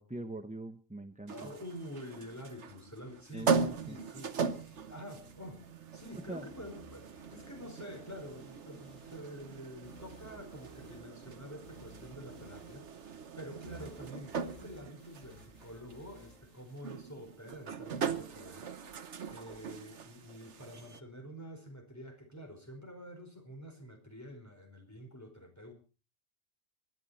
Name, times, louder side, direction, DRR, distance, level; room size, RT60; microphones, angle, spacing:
voice 1, 0.0-1.5 3.3-4.0 6.3-6.5, right 2 dB, 5° right, 8 dB, 0.8 m, -42 dB
voice 2, 1.3-25.7, equal, 15° left, 3 dB, 4.7 m, -48 dB
sound 1, 1.3-21.0, right 5 dB, 65° right, 1.4 m, -40 dB
sound 2, 2.7-17.7, left 1 dB, 65° left, 7.2 m, -59 dB
25.0 x 11.5 x 4.2 m, 0.36 s
omnidirectional pair, 1.3 m